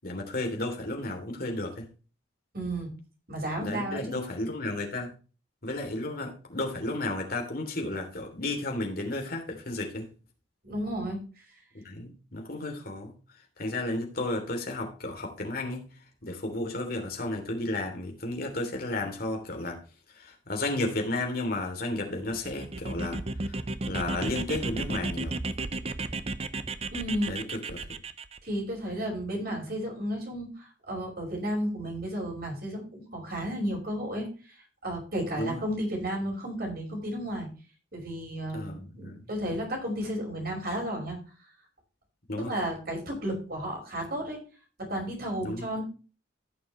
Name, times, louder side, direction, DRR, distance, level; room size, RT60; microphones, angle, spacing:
voice 1, 0.0-1.8 3.6-5.1 5.6-10.1 11.8-13.1 13.6-15.8 16.2-19.8 20.2-23.2 23.9-25.4 27.3-27.4 27.7-27.8 35.4-35.6 38.5-39.2 42.3-42.5 45.4-45.7, left 2 dB, 50° left, 2 dB, 3.1 m, -33 dB
voice 2, 2.5-2.9 3.3-4.2 10.6-11.2 26.9-27.3 28.4-34.3 34.8-37.5 37.9-41.2 42.4-44.4 44.8-45.8, equal, 50° right, 0 dB, 5.4 m, -33 dB
sound 1, 22.3-28.4, right 2 dB, 30° right, 0.7 m, -34 dB
15.5 x 6.8 x 3.2 m, 0.35 s
head